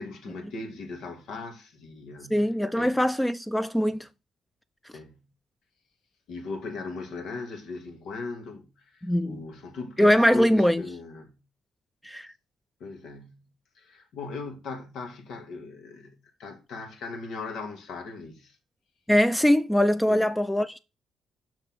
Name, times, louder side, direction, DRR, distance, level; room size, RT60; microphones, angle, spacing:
voice 1, 0.0-3.0 4.9-5.2 6.3-11.4 12.8-13.5 13.8-18.6 20.1-20.3, left 3 dB, 80° left, 2.3 m, -39 dB
voice 2, 2.3-4.1 9.0-9.4 10.0-10.8 12.0-12.3 19.1-20.8, equal, 5° left, 0.5 m, -22 dB
6.6 x 5.8 x 6.2 m
cardioid pair, 90°, 0 cm